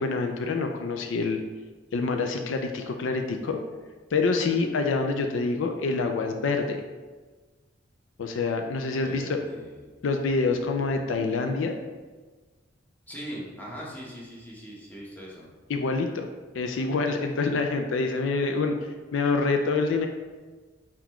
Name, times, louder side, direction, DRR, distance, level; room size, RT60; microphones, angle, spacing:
voice 1, 0.0-1.4 1.9-3.6 4.1-6.8 8.2-9.4 10.0-11.7 15.7-16.3 16.5-18.8 19.1-20.1, left 3 dB, 80° left, 5 dB, 0.4 m, -26 dB
voice 2, 9.0-10.0 13.1-15.5, equal, 10° left, -5 dB, 1.0 m, -41 dB
4.3 x 4.0 x 3.0 m, 1.3 s
head